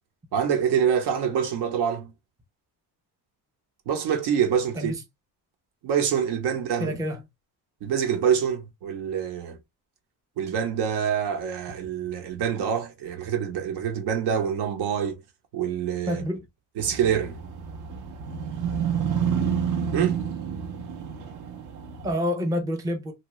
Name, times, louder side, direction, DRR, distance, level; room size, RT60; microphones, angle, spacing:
voice 1, 0.3-2.1 3.9-4.9 5.8-7.0 7.8-9.6 10.4-15.2 15.5-16.2 16.8-17.4 19.9-20.2, right 8 dB, 75° right, 0.9 m, -26 dB
voice 2, 6.8-7.2 16.1-16.5 22.0-23.1, equal, 10° right, 0.4 m, -28 dB
sound 1, 16.8-22.1, right 7 dB, 50° right, 0.6 m, -29 dB
2.8 x 2.3 x 2.9 m
cardioid pair, 150°, 39 cm